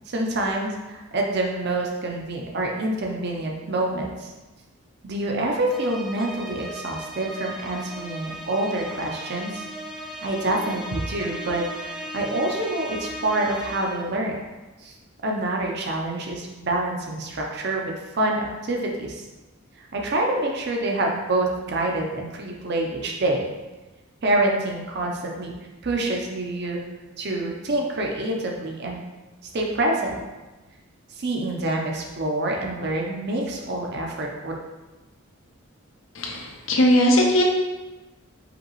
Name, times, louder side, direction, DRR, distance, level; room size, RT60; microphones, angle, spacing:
voice 1, 0.1-4.3 5.0-9.6 10.2-14.4 14.8-14.9 15.2-19.2 19.8-23.5 24.2-25.5 25.8-26.8 27.2-29.0 29.5-30.2 31.1-34.5, right 2 dB, 50° right, 0 dB, 0.7 m, -26 dB
sound 1, 5.7-14.2, right 1 dB, ahead, 0.5 m, -37 dB
voice 2, 36.1-37.4, equal, 65° left, 0 dB, 0.7 m, -19 dB
5.0 x 2.9 x 3.1 m, 1.2 s
head